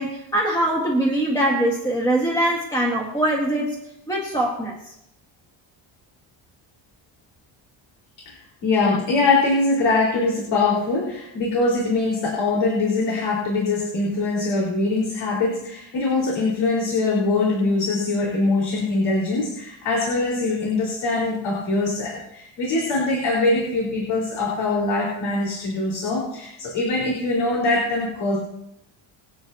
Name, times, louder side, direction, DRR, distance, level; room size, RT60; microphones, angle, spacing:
voice 1, 0.0-3.8 4.1-4.8, right 1 dB, 5° left, -3 dB, 1.7 m, -22 dB
voice 2, 8.6-28.4, left 3 dB, 65° left, -4 dB, 4.7 m, -22 dB
25.0 x 8.9 x 2.9 m, 0.81 s
cardioid pair, 180°, 49 cm